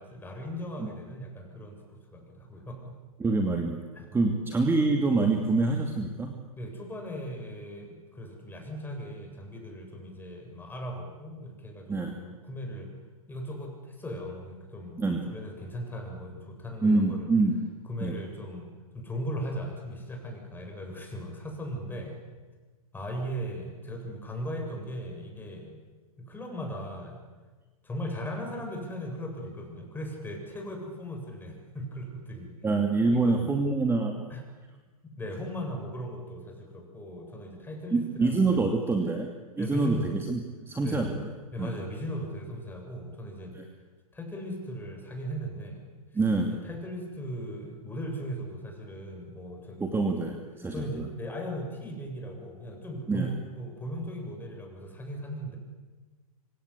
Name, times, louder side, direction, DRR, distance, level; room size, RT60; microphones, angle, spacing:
voice 1, 0.0-3.0 3.9-4.4 6.6-12.9 13.3-17.3 17.9-18.7 18.9-22.2 22.9-25.8 26.2-27.2 27.8-32.5 33.1-33.5 34.3-34.4 35.0-39.0 39.6-40.1 40.8-41.1 41.5-43.6 44.1-45.8 46.5-50.1 50.7-55.6, equal, 10° left, 2 dB, 7.8 m, -38 dB
voice 2, 3.2-3.8 4.1-6.4 11.9-12.2 15.0-15.2 16.8-17.6 18.0-18.1 32.6-34.2 37.9-39.3 39.6-41.2 41.6-41.7 43.5-43.6 46.1-46.6 49.8-51.0 53.1-53.3, right 3 dB, 10° right, 4 dB, 2.6 m, -26 dB
26.0 x 26.0 x 8.4 m, 1.3 s
hypercardioid pair, 115°, 19 cm